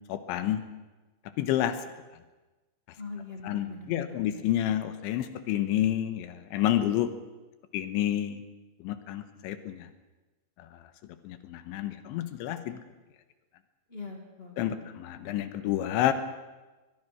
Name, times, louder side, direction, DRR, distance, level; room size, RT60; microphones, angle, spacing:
voice 1, 0.1-0.6 1.4-1.8 3.4-7.1 7.7-8.4 8.8-9.9 11.3-12.8 14.6-16.1, left 12 dB, 85° left, 10 dB, 3.4 m, -29 dB
voice 2, 3.0-4.4 13.9-14.9, left 3 dB, 30° left, 2 dB, 1.1 m, -43 dB
23.0 x 21.5 x 6.1 m, 1.2 s
omnidirectional pair, 5.3 m